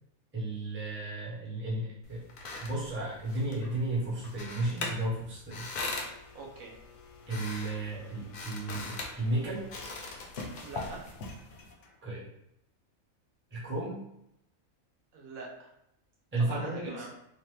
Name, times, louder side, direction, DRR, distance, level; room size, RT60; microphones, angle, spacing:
voice 1, 0.3-2.2 2.6-5.7 7.3-9.6 12.0-12.2 13.5-14.0 16.3-17.1, right 2 dB, 10° right, -6 dB, 0.6 m, -33 dB
sound 1, 2.0-11.7, left 3 dB, 60° left, 0.5 m, -41 dB
Domestic sounds home sounds, 5.7-12.2, left 4 dB, 80° left, 1.0 m, -56 dB
voice 2, 6.3-6.8 10.6-11.1 15.1-15.7 16.5-17.1, right 3 dB, 75° right, -2 dB, 1.2 m, -43 dB
3.1 x 2.1 x 3.2 m, 0.79 s
omnidirectional pair, 1.5 m